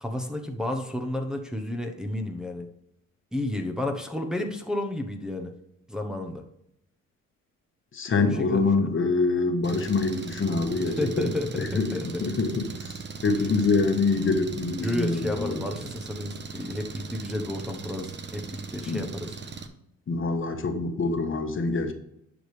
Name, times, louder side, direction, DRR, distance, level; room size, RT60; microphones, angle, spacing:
voice 1, 0.0-2.7 3.3-5.5 5.9-6.4 8.1-8.9 10.9-12.2 14.8-19.4, left 1 dB, ahead, 2 dB, 1.0 m, -31 dB
voice 2, 7.9-12.9 13.2-15.7 18.9-19.0 20.1-21.9, left 3 dB, 40° left, 6 dB, 1.3 m, -25 dB
Engine, 9.6-19.7, right 4 dB, 35° right, 1.0 m, -39 dB
10.5 x 5.1 x 3.3 m, 0.78 s
cardioid pair, 90°, 30 cm